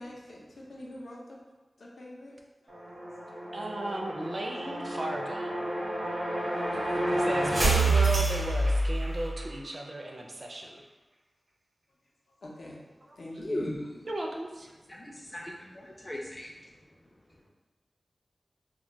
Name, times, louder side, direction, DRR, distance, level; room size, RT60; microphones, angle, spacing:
voice 1, 0.0-1.4 1.8-2.4 2.6-2.7 3.3-3.4 6.7-7.6 12.4-12.8 13.2-13.7, left 1 dB, 75° left, -3 dB, 0.5 m, -44 dB
sound 1, 2.7-9.5, right 2 dB, 80° right, 0.8 m, -28 dB
voice 2, 3.5-5.7 7.1-10.8 13.1-13.2 14.0-14.7, right 1 dB, 50° right, 1 dB, 0.4 m, -35 dB
voice 3, 13.4-13.9 14.9-16.5, left 1 dB, 20° left, -2 dB, 0.3 m, -37 dB
2.2 x 2.1 x 3.8 m, 1.2 s
wide cardioid pair, 85°, 0 cm